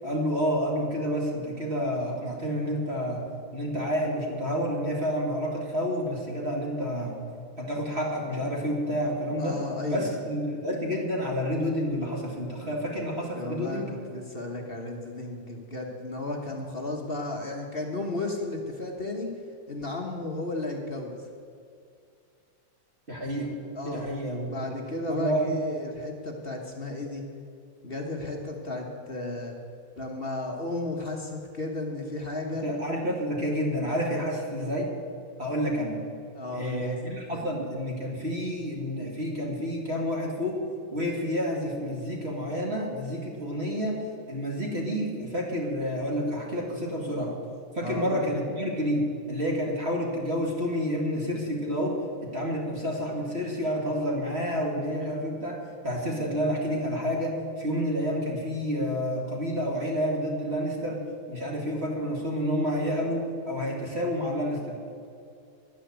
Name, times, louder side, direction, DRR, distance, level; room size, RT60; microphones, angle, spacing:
voice 1, 0.0-3.2 3.5-7.2 7.6-9.6 9.9-13.9 23.1-24.5 25.1-25.6 32.6-34.9 35.4-36.0 36.5-40.6 40.9-47.4 47.7-52.0 52.2-61.0 61.3-64.8, equal, 30° right, -2 dB, 2.4 m, -29 dB
voice 2, 9.4-10.1 13.3-13.8 14.1-19.3 19.7-21.1 23.8-24.1 24.5-27.2 27.8-29.6 30.0-32.6 36.4-37.0 37.3-37.4 47.8-48.3, left 2 dB, 35° left, 1 dB, 1.1 m, -34 dB
11.5 x 10.0 x 8.1 m, 2.4 s
omnidirectional pair, 2.4 m